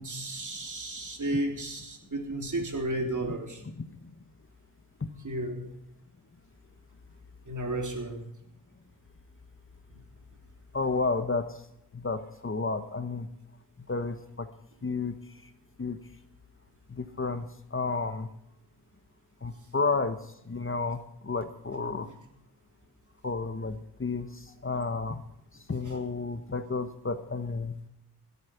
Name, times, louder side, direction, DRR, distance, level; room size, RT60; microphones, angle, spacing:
voice 1, 0.0-3.6 5.2-5.6 7.5-8.3 9.9-10.0, right 1 dB, 50° right, 3 dB, 3.5 m, -33 dB
voice 2, 10.7-11.5 12.0-13.3 13.9-14.5 14.8-15.1 15.8-16.0 17.0-18.3 19.4-20.2 20.5-21.0 21.2-22.1 23.2-24.3 24.6-25.2 25.7-27.7, left 4 dB, 30° left, 10 dB, 1.1 m, -31 dB
17.0 x 8.4 x 5.8 m, 0.80 s
cardioid pair, 65°, 40 cm